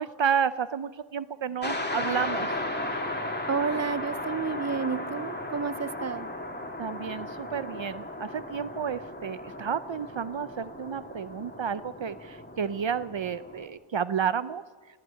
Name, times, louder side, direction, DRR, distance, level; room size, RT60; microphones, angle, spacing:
voice 1, 0.0-2.7 6.8-14.6, right 7 dB, 65° right, 15 dB, 0.8 m, -31 dB
sound 1, 1.6-13.7, left 1 dB, 20° left, 2.9 m, -35 dB
voice 2, 3.5-6.3, right 5 dB, 30° right, 16 dB, 0.8 m, -30 dB
18.5 x 17.5 x 9.1 m, 1.5 s
wide cardioid pair, 40°, 50 cm